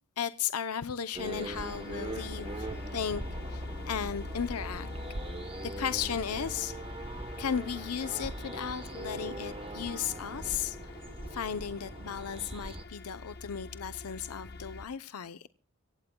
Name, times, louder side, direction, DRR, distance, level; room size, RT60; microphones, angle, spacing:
voice 1, 0.2-3.2 3.5-4.9 5.6-6.7 7.4-10.9 11.3-15.5, left 7 dB, 90° left, 0.7 m, -35 dB
sound 1, 1.1-14.9, left 3 dB, 45° left, 0.9 m, -44 dB
sound 2, 1.2-12.8, right 1 dB, 25° right, 1.0 m, -41 dB
25.5 x 15.5 x 2.2 m
head